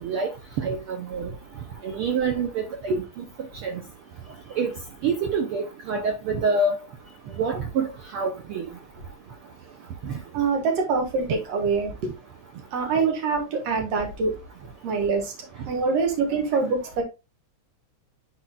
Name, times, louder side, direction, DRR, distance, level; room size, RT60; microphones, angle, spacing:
voice 1, 0.6-1.3 1.8-3.0 3.6-3.8 4.6-4.7 5.0-6.7 7.4-7.9 8.1-8.6, right 4 dB, 90° right, 1.2 m, -26 dB
voice 2, 10.3-11.9 12.7-14.3 14.8-15.3 15.7-17.0, right 4 dB, 60° right, 2.6 m, -24 dB
10.0 x 4.3 x 2.3 m
omnidirectional pair, 3.5 m